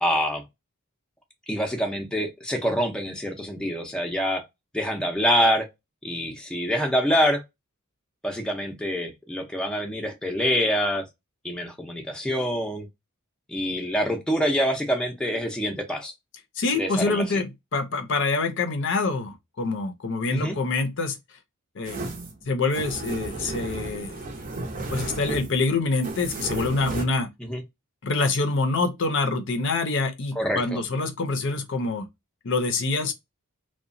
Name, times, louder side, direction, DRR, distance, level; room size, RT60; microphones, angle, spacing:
voice 1, 0.0-0.4 1.5-4.4 4.7-5.7 6.0-7.4 8.2-11.0 11.4-12.9 13.5-16.1 16.8-17.4 20.3-20.6 27.4-27.6 30.4-30.8, equal, 5° left, 0.5 m, -26 dB
voice 2, 16.6-21.2 21.8-22.1 22.5-24.2 24.9-27.3 28.0-32.1 32.4-33.1, left 3 dB, 60° left, 0.6 m, -26 dB
sound 1, 21.8-27.0, right 2 dB, 40° right, 0.6 m, -34 dB
2.9 x 2.1 x 2.5 m
head